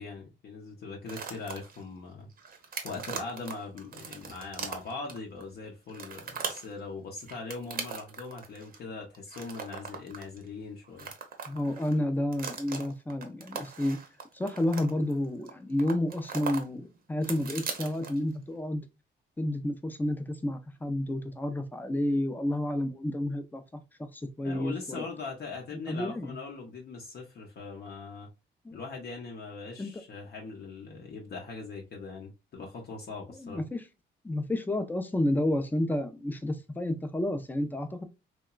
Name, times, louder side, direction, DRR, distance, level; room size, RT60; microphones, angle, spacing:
voice 1, 0.0-2.3 2.8-11.1 24.4-28.3 28.7-33.6, left 4 dB, 55° left, 0.7 m, -41 dB
sound 1, 1.1-1.8 2.3-5.4 5.9-6.7 7.2-8.8 9.1-10.5 10.8-12.0 12.3-15.5 15.8-16.6 16.9-18.3, right 6 dB, 45° right, 0.6 m, -39 dB
voice 2, 11.5-14.0 14.3-18.8 19.4-25.0 25.9-26.4 28.6-28.8 29.8-29.9 33.4-33.8 34.2-38.0, left 1 dB, 10° left, 0.4 m, -30 dB
2.9 x 2.2 x 2.2 m
cardioid pair, 90°, 20 cm